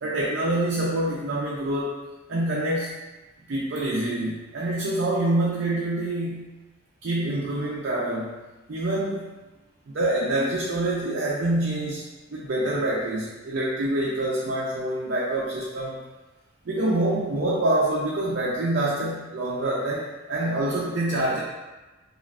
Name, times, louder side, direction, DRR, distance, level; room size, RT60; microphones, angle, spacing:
voice 1, 0.0-2.0 2.3-3.0 3.5-6.5 7.0-8.3 8.7-9.3 9.9-12.0 12.3-16.0 16.6-21.4, right 1 dB, 65° right, -5 dB, 0.4 m, -26 dB
3.2 x 2.4 x 2.4 m, 1.2 s
head